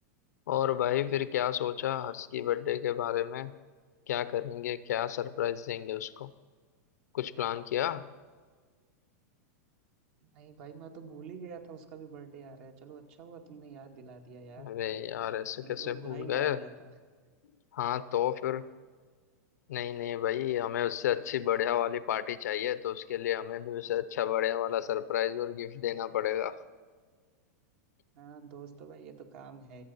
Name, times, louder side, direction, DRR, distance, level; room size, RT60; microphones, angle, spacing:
voice 1, 0.5-3.5 4.1-6.3 7.1-8.1 14.6-16.6 17.7-18.7 19.7-26.6, left 11 dB, 85° left, 15 dB, 0.8 m, -31 dB
voice 2, 10.3-14.7 15.6-16.9 28.1-29.8, right 6 dB, 55° right, 4 dB, 2.2 m, -47 dB
25.0 x 8.5 x 5.6 m, 1.5 s
supercardioid pair, 140°, 9 cm